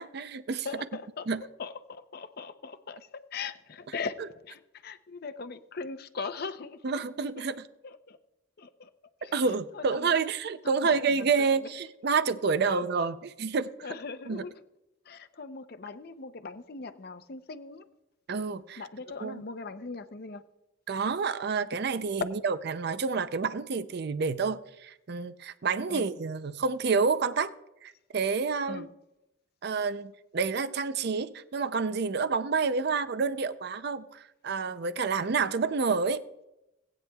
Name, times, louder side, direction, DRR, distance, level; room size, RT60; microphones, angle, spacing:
voice 1, 0.0-0.7 1.3-1.4 6.8-7.7 9.3-13.7 14.3-14.4 18.3-18.8 19.2-19.4 20.9-27.5 27.8-28.9 29.6-36.2, right 5 dB, 50° right, 0.5 m, -29 dB
voice 2, 0.6-1.3 1.6-7.0 7.8-8.2 8.6-8.9 9.2-9.3 9.7-10.3 10.6-11.7 12.6-12.8 13.8-14.6 15.1-17.9 18.8-20.4 25.9-26.1 28.7-28.9, left 4 dB, 50° left, 0.6 m, -40 dB
19.0 x 9.2 x 2.3 m
head